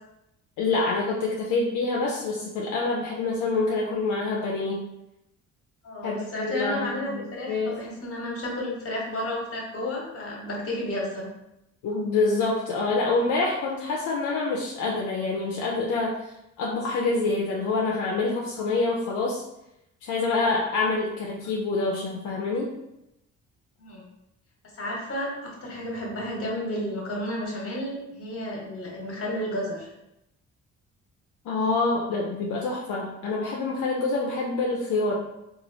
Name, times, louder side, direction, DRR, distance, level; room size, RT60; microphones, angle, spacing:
voice 1, 0.6-4.8 6.0-7.8 11.8-16.3 16.6-19.4 20.0-22.7 31.5-35.1, left 3 dB, 80° left, -2 dB, 0.5 m, -26 dB
voice 2, 5.8-11.3 23.8-24.0 24.8-29.9, left 1 dB, 50° left, -2 dB, 1.1 m, -32 dB
3.0 x 2.4 x 2.6 m, 0.86 s
cardioid pair, 90°, 30 cm